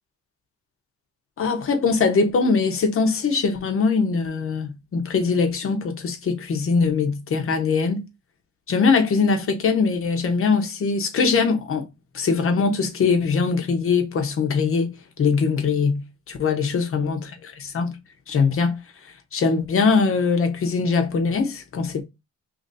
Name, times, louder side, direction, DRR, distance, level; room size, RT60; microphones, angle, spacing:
voice 1, 1.4-8.0 8.7-11.9 12.1-16.0 16.3-18.0 18.3-22.0, left 4 dB, 45° left, 1.0 m, -22 dB
2.8 x 2.7 x 4.0 m
cardioid pair, 90°, 30 cm